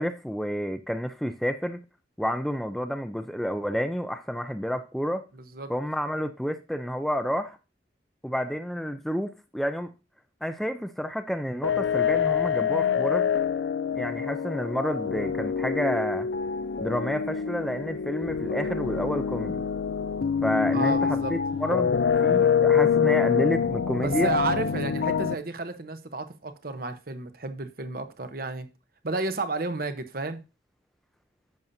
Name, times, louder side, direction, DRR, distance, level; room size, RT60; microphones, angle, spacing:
voice 1, 0.0-1.8 2.2-5.2 5.7-7.6 8.2-9.9 10.4-13.3 13.9-16.3 16.8-19.6 20.4-24.3, equal, ahead, 0.4 m, -30 dB
voice 2, 5.3-5.7 20.7-21.3 24.0-28.7 29.0-30.4, right 3 dB, 50° right, 0.9 m, -32 dB
sound 1, 11.6-25.3, left 7 dB, 75° left, 0.4 m, -25 dB
10.5 x 7.1 x 2.7 m
head